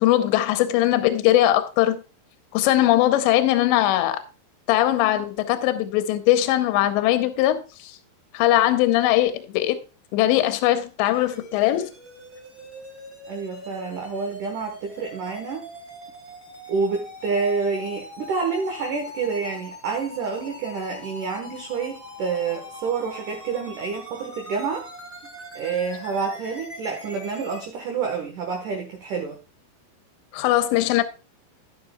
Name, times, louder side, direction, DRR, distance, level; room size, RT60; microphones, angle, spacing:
voice 1, 0.0-2.0 2.5-4.2 4.7-8.0 8.3-9.8 10.1-11.9 30.3-31.0, left 14 dB, 85° left, 3.0 m, -20 dB
sound 1, 11.1-27.7, equal, 5° right, 1.5 m, -42 dB
voice 2, 13.3-15.6 16.7-24.8 25.6-29.4, right 5 dB, 65° right, 2.2 m, -28 dB
11.5 x 10.5 x 2.3 m
omnidirectional pair, 5.2 m